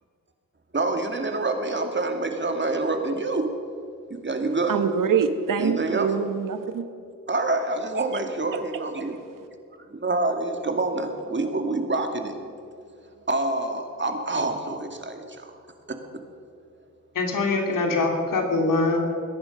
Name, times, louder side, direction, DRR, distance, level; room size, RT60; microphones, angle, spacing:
voice 1, 0.7-3.5 4.1-4.8 5.6-6.1 7.3-9.2 9.9-12.3 13.3-15.6 15.9-16.0, right 2 dB, 35° right, 5 dB, 2.2 m, -27 dB
voice 2, 4.7-6.9, right 6 dB, 80° right, 9 dB, 1.2 m, -24 dB
voice 3, 17.1-19.0, left 3 dB, 85° left, 2 dB, 2.7 m, -23 dB
23.0 x 10.5 x 5.4 m, 2.4 s
cardioid pair, 60°, 32 cm